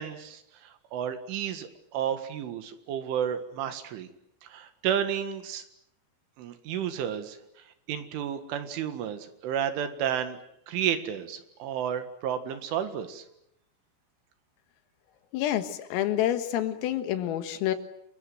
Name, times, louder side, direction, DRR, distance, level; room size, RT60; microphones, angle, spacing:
voice 1, 0.0-4.1 4.4-5.6 6.4-7.4 7.9-10.4 10.7-13.2, right 9 dB, 70° right, 9 dB, 4.1 m, -32 dB
voice 2, 15.3-17.8, left 12 dB, 80° left, 9 dB, 4.2 m, -28 dB
29.0 x 22.5 x 7.9 m, 0.77 s
omnidirectional pair, 5.9 m